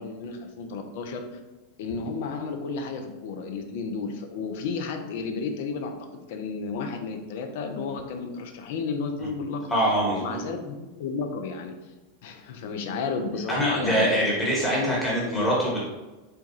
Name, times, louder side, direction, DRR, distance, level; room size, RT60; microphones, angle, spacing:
voice 1, 0.0-1.4 1.8-9.6 10.2-11.7 12.2-14.2 14.6-15.5, left 4 dB, 55° left, 5 dB, 0.4 m, -32 dB
voice 2, 9.7-10.4 13.5-15.8, equal, 10° left, -6 dB, 1.1 m, -24 dB
4.4 x 2.3 x 2.7 m, 1.1 s
figure-of-eight pair, 85°, 0 cm